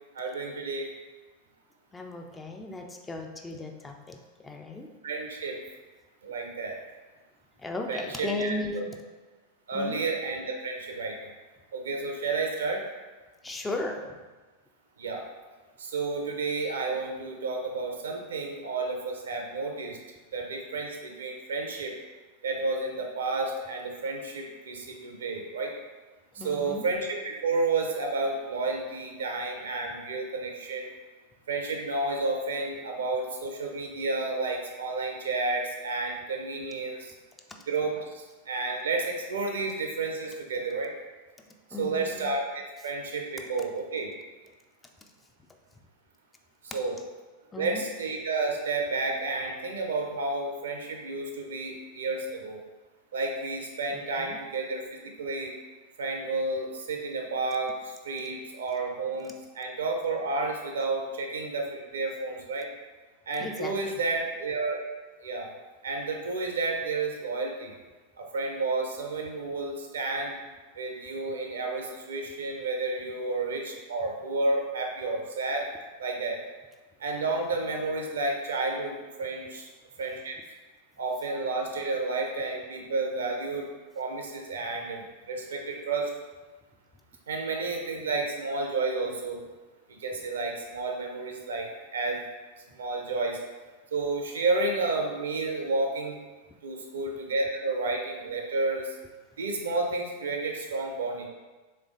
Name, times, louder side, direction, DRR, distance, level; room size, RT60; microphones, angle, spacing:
voice 1, 0.1-0.9 5.0-5.6 6.2-6.8 7.9-8.8 9.7-11.2 11.7-12.8 15.0-15.2 15.8-20.0 20.3-21.9 22.4-25.7 26.4-30.9 31.5-37.1 37.7-40.9 41.8-44.1 46.7-46.9 47.6-52.6 53.1-55.5 56.0-62.7 63.3-64.8 65.2-65.5 65.8-67.7 68.3-70.4 70.8-75.7 76.0-76.4 77.0-79.7 80.0-80.3 81.0-83.7 83.9-86.1 87.3-89.4 90.0-92.2 92.7-93.4 93.9-96.2 96.6-98.9 99.4-101.3, right 3 dB, 65° right, 2 dB, 0.7 m, -31 dB
voice 2, 1.9-4.2 4.4-4.9 7.6-9.0 9.7-10.1 13.4-14.1 26.4-26.9 41.7-42.3 47.5-47.8 53.9-54.4 63.4-63.9, left 2 dB, 10° left, 3 dB, 0.4 m, -36 dB
3.5 x 3.3 x 3.8 m, 1.3 s
figure-of-eight pair, 90°, 0 cm